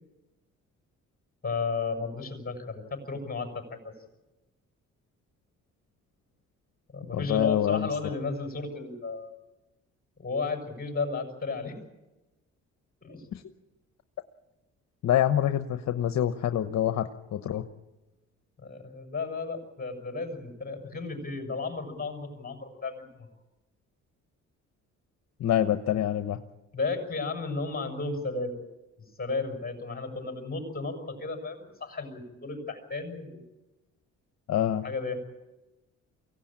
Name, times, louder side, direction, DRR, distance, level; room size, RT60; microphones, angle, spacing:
voice 1, 1.4-3.9 6.9-9.4 10.2-11.8 13.0-13.2 18.6-23.3 26.7-28.6 29.0-33.4 34.8-35.4, left 4 dB, 30° left, 3 dB, 6.4 m, -34 dB
voice 2, 7.1-7.9 13.3-13.4 15.0-17.6 25.4-26.4 34.5-34.8, left 11 dB, 60° left, 9 dB, 1.1 m, -26 dB
24.0 x 17.0 x 8.9 m, 1.1 s
cardioid pair, 90°, 30 cm